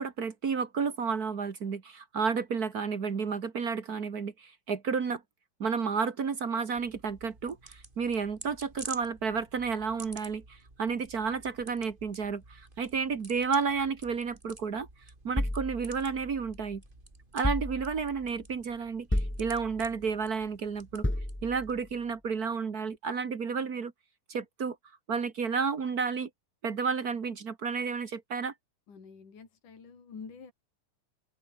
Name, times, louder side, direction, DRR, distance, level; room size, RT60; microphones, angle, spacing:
voice 1, 0.0-5.2 5.6-14.9 15.2-16.8 17.3-21.0 21.4-23.9 24.3-24.8 25.1-26.3 26.6-28.5, right 5 dB, 45° right, 1.3 m, -31 dB
sound 1, 6.8-21.9, right 2 dB, 15° right, 3.7 m, -51 dB
sound 2, 15.4-16.8 17.4-18.3 19.1-20.0 21.0-21.8, left 1 dB, 10° left, 0.6 m, -33 dB
voice 2, 28.9-30.5, left 5 dB, 60° left, 5.9 m, -47 dB
open air
omnidirectional pair, 4.0 m